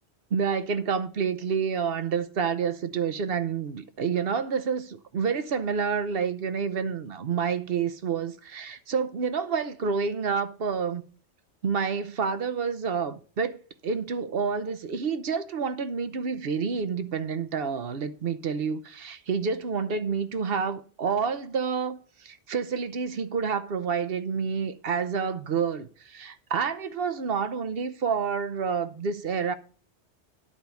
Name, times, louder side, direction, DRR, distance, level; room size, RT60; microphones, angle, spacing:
voice 1, 0.3-11.0 11.6-13.6 13.8-29.5, right 6 dB, 60° right, 1.0 m, -28 dB
11.0 x 4.6 x 6.9 m
omnidirectional pair, 1.1 m